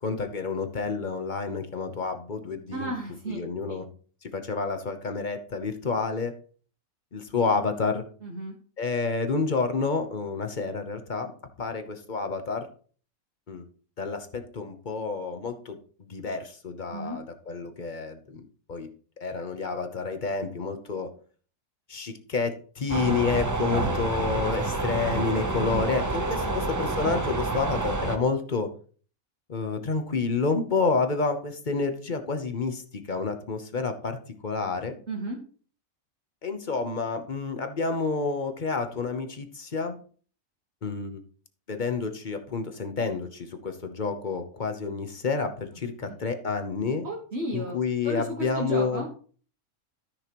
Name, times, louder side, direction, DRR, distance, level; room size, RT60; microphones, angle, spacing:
voice 1, 0.0-2.9 3.3-3.9 4.2-6.3 7.1-8.0 8.8-11.3 11.6-12.7 13.5-13.6 14.0-15.8 16.1-18.4 18.7-18.9 19.2-21.1 21.9-28.7 29.5-34.2 34.4-35.0 36.4-40.0 40.8-41.2 41.7-47.1 47.5-49.0, left 4 dB, 40° left, 7 dB, 1.0 m, -29 dB
voice 2, 2.7-3.4 3.7-3.8 8.2-8.5 16.9-17.2 23.8-23.9 26.5-26.6 35.1-35.4 46.0-46.1 47.0-49.1, right 1 dB, 50° right, -3 dB, 1.7 m, -34 dB
sound 1, 22.9-28.2, right 2 dB, 20° right, 0.5 m, -28 dB
13.5 x 6.0 x 3.0 m, 0.43 s
omnidirectional pair, 1.5 m